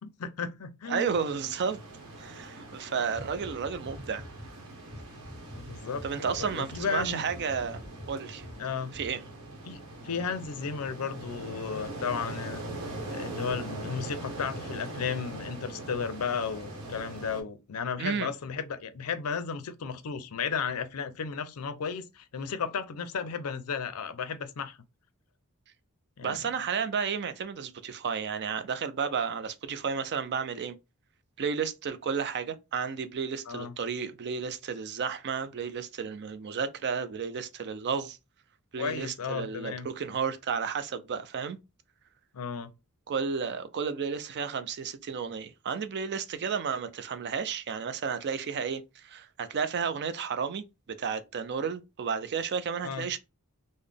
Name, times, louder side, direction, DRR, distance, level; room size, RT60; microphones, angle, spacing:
voice 1, 0.0-1.1 2.9-3.0 5.6-7.2 8.6-9.0 9.7-12.6 13.1-24.8 26.2-26.4 33.5-33.7 38.8-39.9 42.3-42.7 52.8-53.1, left 6 dB, 75° left, 0.5 m, -34 dB
voice 2, 0.9-1.8 2.2-4.2 6.0-7.8 8.1-8.5 8.9-9.2 18.0-18.3 26.2-30.8 31.4-38.2 38.7-41.6 43.1-53.2, right 6 dB, 50° right, 0.4 m, -32 dB
sound 1, 1.1-17.4, right 1 dB, 80° right, 1.0 m, -42 dB
sound 2, 3.1-4.5 4.9-8.6 8.9-9.1, equal, 25° right, 0.8 m, -45 dB
3.8 x 2.1 x 3.3 m
head